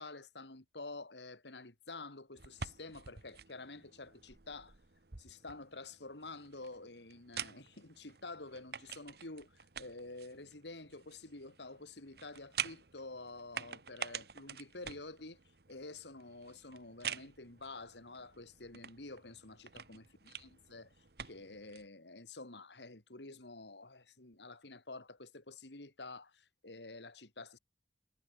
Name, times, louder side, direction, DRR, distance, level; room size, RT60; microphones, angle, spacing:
voice 1, 0.0-4.8 5.2-15.4 15.7-27.6, left 3 dB, 80° left, 2.8 m, -49 dB
sound 1, 2.4-21.9, right 7 dB, 60° right, 1.4 m, -48 dB
head